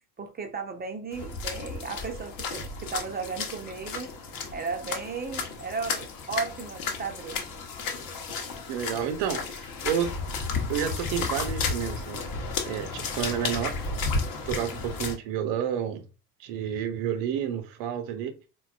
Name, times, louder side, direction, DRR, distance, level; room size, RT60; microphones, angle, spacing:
voice 1, 0.2-4.1 4.5-7.5, right 4 dB, 20° right, 0.6 m, -35 dB
sound 1, 1.1-15.1, left 4 dB, 45° left, 0.9 m, -33 dB
voice 2, 8.7-10.2 10.7-12.2 12.6-13.7 14.5-16.1 16.4-18.3, right 9 dB, 55° right, 0.7 m, -30 dB
4.0 x 2.2 x 2.4 m
figure-of-eight pair, 55°, 48 cm